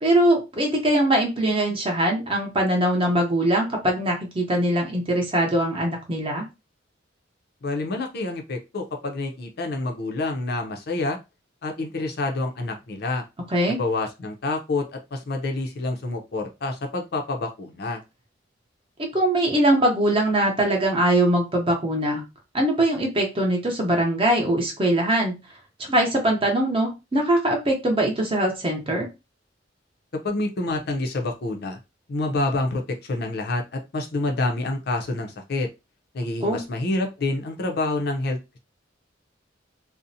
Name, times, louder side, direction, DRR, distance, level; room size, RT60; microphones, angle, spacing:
voice 1, 0.0-6.4 13.5-13.8 19.0-22.2 22.5-25.4 25.9-29.1 36.4-36.6, right 1 dB, 30° right, 1 dB, 0.7 m, -22 dB
voice 2, 7.6-11.2 11.6-13.2 13.7-18.0 30.2-31.8 32.1-35.7 36.1-38.4, left 2 dB, 60° left, 3 dB, 0.5 m, -27 dB
2.5 x 2.0 x 2.6 m, 0.25 s
head